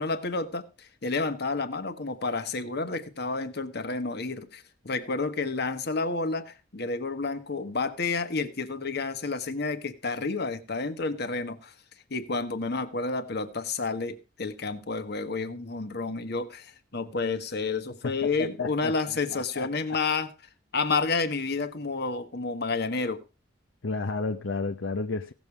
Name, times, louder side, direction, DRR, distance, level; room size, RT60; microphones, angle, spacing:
voice 1, 0.0-11.7 12.1-20.3 20.7-23.2, left 4 dB, 60° left, 1.4 m, -30 dB
voice 2, 18.0-18.9 19.3-19.7 23.8-25.3, left 3 dB, 85° left, 0.8 m, -31 dB
17.0 x 7.3 x 4.7 m
head